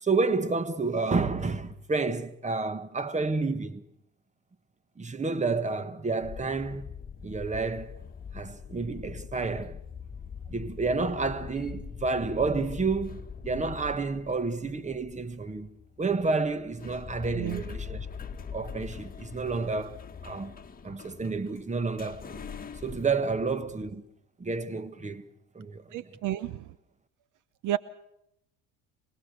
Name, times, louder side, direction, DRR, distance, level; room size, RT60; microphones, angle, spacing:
voice 1, 0.0-3.8 5.0-6.9 7.2-8.0 8.3-9.8 10.5-18.1 18.5-22.4 22.8-24.0 24.4-25.3 25.6-26.0, right 4 dB, 20° right, 1.6 m, -30 dB
sound 1, 6.2-23.2, left 6 dB, 25° left, 1.8 m, -42 dB
voice 2, 17.3-17.6 25.9-26.7 27.6-27.8, right 13 dB, 60° right, 1.0 m, -31 dB
25.5 x 20.0 x 6.8 m
supercardioid pair, 80°, 35 cm